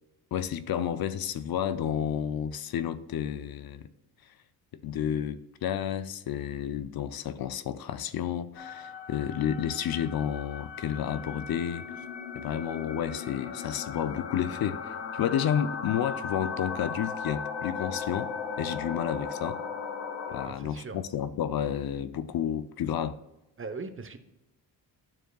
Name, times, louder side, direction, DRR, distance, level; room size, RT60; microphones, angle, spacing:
voice 1, 0.3-3.9 4.8-11.9 12.4-19.6 20.3-23.2, left 9 dB, 60° left, 0.6 m, -31 dB
sound 1, 8.6-20.5, left 6 dB, 85° left, 0.9 m, -37 dB
voice 2, 20.4-21.0 23.6-24.2, right 4 dB, 30° right, 0.8 m, -39 dB
12.0 x 4.5 x 2.3 m
cardioid pair, 95°, 41 cm